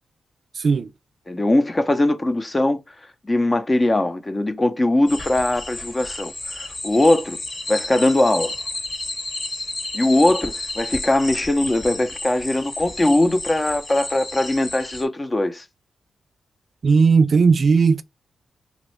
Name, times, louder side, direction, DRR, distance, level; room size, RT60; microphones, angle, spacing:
voice 1, 1.3-7.4 7.7-8.5 9.9-15.6, left 1 dB, 25° left, 0.6 m, -20 dB
sound 1, 5.1-15.0, left 2 dB, 45° left, 1.0 m, -32 dB
voice 2, 16.8-18.0, right 5 dB, 60° right, 0.3 m, -16 dB
3.1 x 2.4 x 3.0 m
cardioid pair, 55°, 0 cm